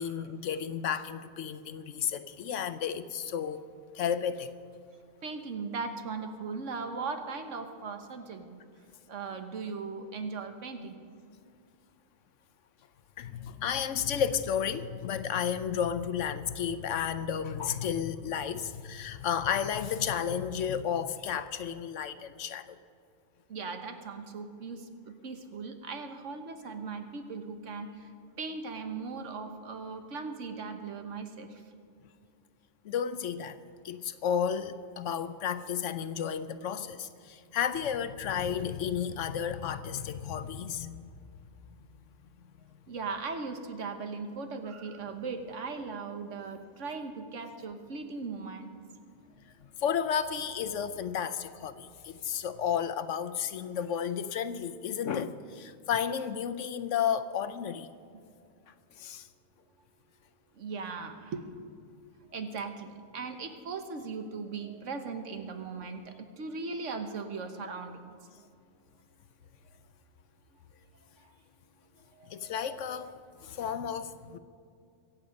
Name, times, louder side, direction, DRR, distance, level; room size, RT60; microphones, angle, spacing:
voice 1, 0.0-3.6 3.9-4.5 13.2-22.8 32.8-33.6 33.8-41.1 49.8-57.9 58.7-59.3 72.3-73.1 73.4-74.4, left 8 dB, 75° left, 12 dB, 1.0 m, -32 dB
voice 2, 5.2-8.6 9.1-10.9 18.4-18.5 23.5-27.9 28.4-31.5 42.9-48.7 60.6-61.5 62.3-68.1 72.2-72.4, right 4 dB, 70° right, 7 dB, 1.5 m, -38 dB
23.5 x 8.7 x 5.2 m, 2.4 s
omnidirectional pair, 1.3 m